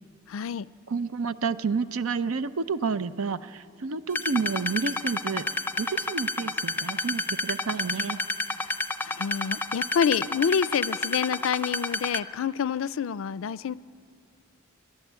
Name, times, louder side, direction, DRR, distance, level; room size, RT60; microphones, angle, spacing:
voice 1, 0.3-0.7 9.0-13.7, left 7 dB, 65° left, 19 dB, 0.4 m, -27 dB
voice 2, 0.9-8.2, right 5 dB, 85° right, 14 dB, 0.6 m, -30 dB
sound 1, 4.1-12.2, left 3 dB, 10° left, 0.6 m, -29 dB
28.0 x 12.0 x 8.2 m, 2.7 s
head